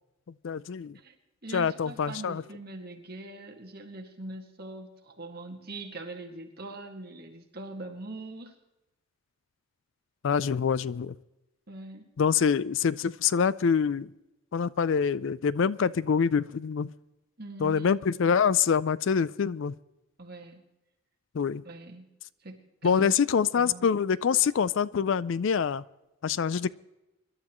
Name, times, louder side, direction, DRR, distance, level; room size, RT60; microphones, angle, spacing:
voice 1, 0.4-1.0 1.5-2.4 10.2-11.1 12.2-14.1 14.5-16.9 17.6-19.7 21.3-21.6 22.8-25.8 26.2-26.7, left 6 dB, 55° left, 19 dB, 0.4 m, -25 dB
voice 2, 1.4-8.5 11.7-12.0 17.4-17.9 20.2-20.6 21.6-22.1 22.4-23.1 23.6-23.9, right 2 dB, 45° right, 2 dB, 2.0 m, -42 dB
25.0 x 12.0 x 3.0 m, 0.99 s
head